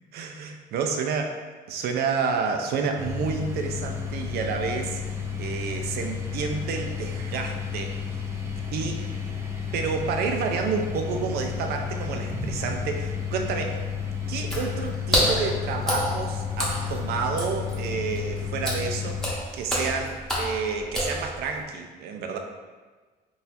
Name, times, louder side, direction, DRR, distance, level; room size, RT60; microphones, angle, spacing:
voice 1, 0.1-1.4 1.7-8.0 8.7-9.0 9.7-13.8 14.3-22.4, right 5 dB, 70° right, 4 dB, 0.5 m, -30 dB
sound 1, 3.0-19.3, left 6 dB, 15° right, 0.5 m, -32 dB
Water / Splash splatter, 14.4-21.6, equal, 5° left, 0.9 m, -29 dB
3.9 x 2.8 x 2.5 m, 1.4 s
cardioid pair, 110°, 17 cm